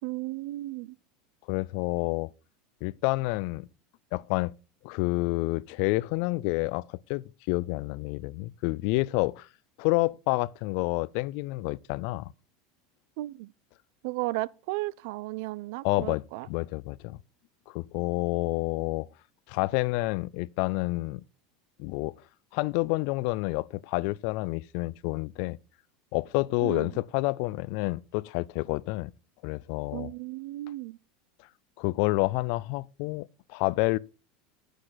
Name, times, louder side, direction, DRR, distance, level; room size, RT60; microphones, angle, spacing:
voice 1, 0.0-1.0 13.2-13.5 14.0-16.5 26.6-26.9 29.9-31.0, right 19 dB, 65° right, 0.4 m, -34 dB
voice 2, 1.5-2.3 2.8-3.7 4.1-4.5 4.8-9.5 9.8-12.3 15.8-17.2 17.7-19.1 19.5-21.2 21.8-22.1 22.5-25.6 26.1-29.1 29.4-30.1 31.8-34.0, left 22 dB, 60° left, 0.3 m, -29 dB
9.9 x 6.5 x 3.9 m
supercardioid pair, 125°, 0 cm